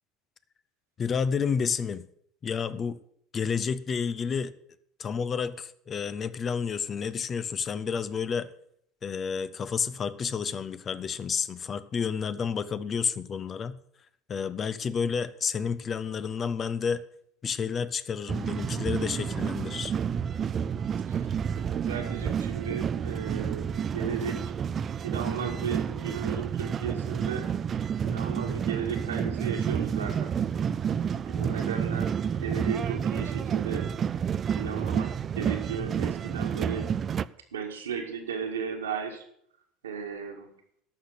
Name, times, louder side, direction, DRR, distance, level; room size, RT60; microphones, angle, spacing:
voice 1, 1.0-2.0 2.4-3.0 3.3-4.5 5.0-8.5 9.0-13.8 14.3-17.0 17.4-19.9, left 6 dB, 35° left, 15 dB, 0.7 m, -30 dB
sound 1, 18.3-37.2, right 7 dB, 35° right, 0.4 m, -30 dB
voice 2, 21.1-24.5 25.0-27.5 28.0-30.3 31.3-33.9 34.5-36.9 37.5-39.2 39.8-40.5, right 7 dB, 75° right, 3 dB, 1.9 m, -35 dB
11.5 x 6.6 x 8.1 m, 0.68 s
figure-of-eight pair, 70°, 0 cm